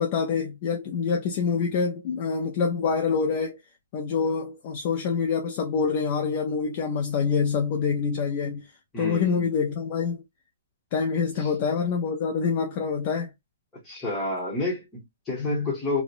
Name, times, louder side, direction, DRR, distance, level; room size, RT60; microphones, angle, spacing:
voice 1, 0.0-3.6 3.9-8.7 9.0-10.2 10.9-13.3 15.4-15.7, left 5 dB, 25° left, 0.3 m, -26 dB
voice 2, 8.9-9.4 11.4-11.5 13.8-16.0, left 2 dB, 10° left, 0.9 m, -30 dB
2.7 x 2.1 x 2.4 m
hypercardioid pair, 180°, 0 cm